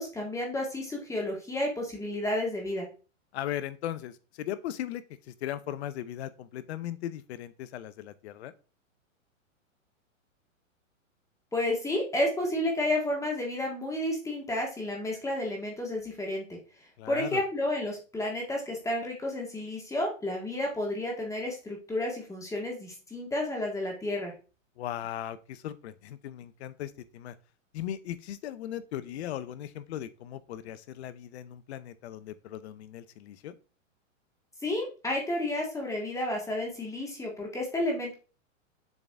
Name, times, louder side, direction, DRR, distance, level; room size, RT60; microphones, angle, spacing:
voice 1, 0.0-2.9 11.5-16.6 17.1-24.3 34.6-38.1, left 1 dB, 10° left, 0 dB, 1.7 m, -31 dB
voice 2, 3.3-8.5 17.0-17.4 24.8-27.4 27.7-33.5, left 11 dB, 55° left, 14 dB, 0.8 m, -38 dB
7.2 x 3.9 x 3.5 m, 0.34 s
hypercardioid pair, 135°, 39 cm